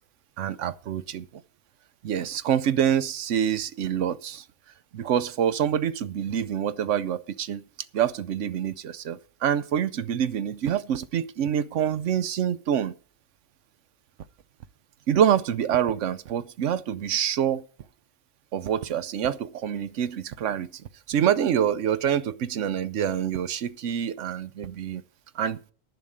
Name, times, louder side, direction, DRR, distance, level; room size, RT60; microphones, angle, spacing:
voice 1, 0.4-1.3 2.0-4.4 4.9-7.6 7.9-12.9 15.1-17.6 18.5-20.8 21.1-25.0 25.3-25.6, right 9 dB, 65° right, 1.0 m, -26 dB
11.0 x 5.7 x 8.6 m
omnidirectional pair, 1.4 m